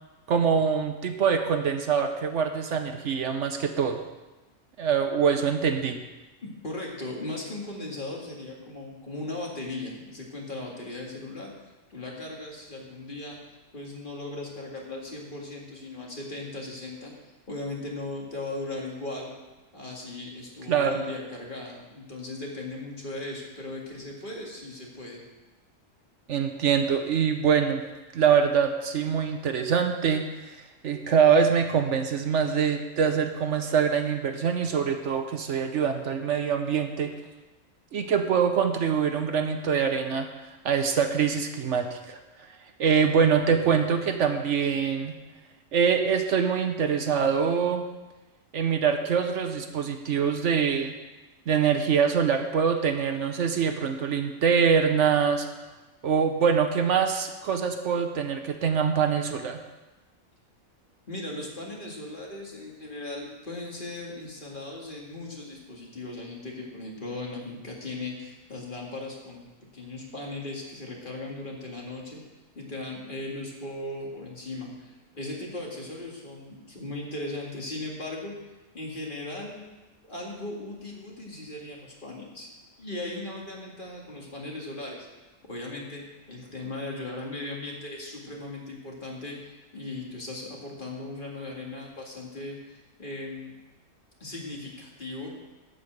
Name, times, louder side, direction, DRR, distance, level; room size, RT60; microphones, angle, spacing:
voice 1, 0.3-4.0 4.8-6.0 20.7-21.0 26.3-27.8 28.1-30.6 30.8-37.1 37.9-40.3 40.6-42.2 42.8-45.1 45.7-47.8 48.5-50.9 51.5-55.5 56.0-59.6, right 6 dB, 65° right, 6 dB, 1.1 m, -24 dB
voice 2, 6.6-11.5 11.9-13.4 13.7-17.1 17.5-19.3 19.7-25.2 61.1-69.5 69.7-72.2 72.6-78.3 78.7-79.6 80.1-82.5 82.8-85.1 85.5-93.6 94.2-95.3, left 2 dB, 40° left, -2 dB, 2.2 m, -37 dB
11.5 x 5.6 x 7.9 m, 1.1 s
omnidirectional pair, 1.4 m